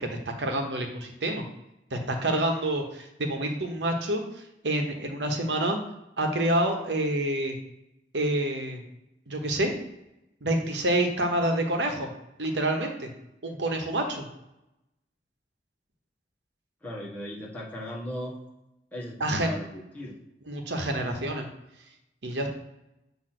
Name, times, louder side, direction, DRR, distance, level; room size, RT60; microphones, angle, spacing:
voice 1, 0.0-1.4 1.9-5.8 6.2-7.5 8.1-8.8 9.3-9.7 10.4-12.1 12.4-13.1 13.4-14.3 19.2-19.5 20.5-21.5 22.2-22.5, right 1 dB, 85° right, 4 dB, 1.0 m, -27 dB
voice 2, 16.8-18.4 18.9-20.2, left 1 dB, 10° left, -5 dB, 1.5 m, -37 dB
7.7 x 2.9 x 5.9 m, 0.89 s
head